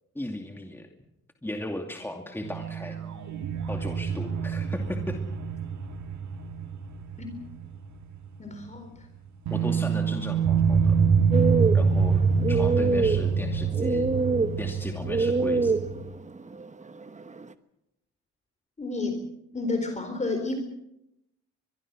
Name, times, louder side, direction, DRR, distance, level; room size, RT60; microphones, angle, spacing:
voice 1, 0.1-0.9 1.4-3.0 3.7-5.2 9.5-10.9 11.7-12.2 12.5-14.1 14.6-15.8, left 1 dB, 5° left, 3 dB, 2.5 m, -36 dB
sound 1, 2.4-7.9 8.1-8.3 9.5-16.0, right 6 dB, 65° right, 2.9 m, -26 dB
voice 2, 8.4-8.9 18.8-19.2 19.5-20.6, left 3 dB, 25° left, 5 dB, 4.2 m, -30 dB
sound 2, 11.3-17.5, right 3 dB, 25° right, 1.2 m, -27 dB
23.5 x 22.0 x 6.3 m, 0.85 s
cardioid pair, 90°, 30 cm